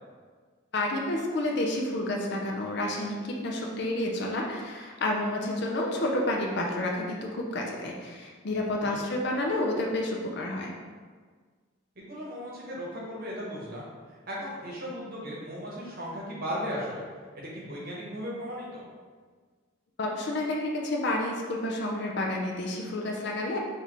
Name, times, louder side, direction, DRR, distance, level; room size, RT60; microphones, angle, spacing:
voice 1, 0.7-10.7 20.0-23.6, left 1 dB, 60° left, 0 dB, 0.6 m, -30 dB
voice 2, 8.8-9.2 12.0-17.1 17.3-18.9, equal, 50° right, -5 dB, 0.9 m, -37 dB
6.1 x 2.7 x 3.1 m, 1.5 s
head